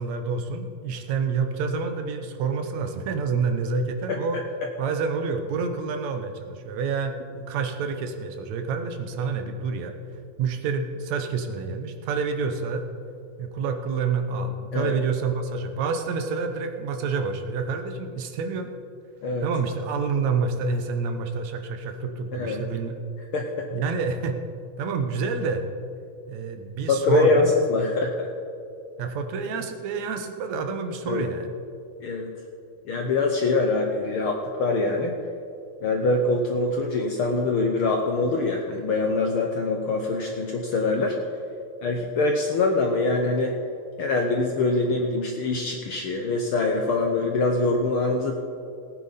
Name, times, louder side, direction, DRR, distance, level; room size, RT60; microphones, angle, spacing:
voice 1, 0.0-4.4 4.8-7.1 7.5-10.0 10.4-12.8 13.4-18.7 19.4-22.9 23.7-24.4 24.8-25.6 26.3-27.5 29.0-31.5, right 5 dB, 75° right, 6 dB, 2.1 m, -28 dB
voice 2, 22.3-22.6 23.3-23.7 26.9-27.4 27.7-28.3 31.1-31.2 32.0-32.3 32.8-35.1 35.8-41.2 41.8-43.6 44.0-48.3, left 3 dB, 70° left, 2 dB, 1.3 m, -24 dB
18.5 x 9.4 x 4.1 m, 2.6 s
omnidirectional pair, 3.3 m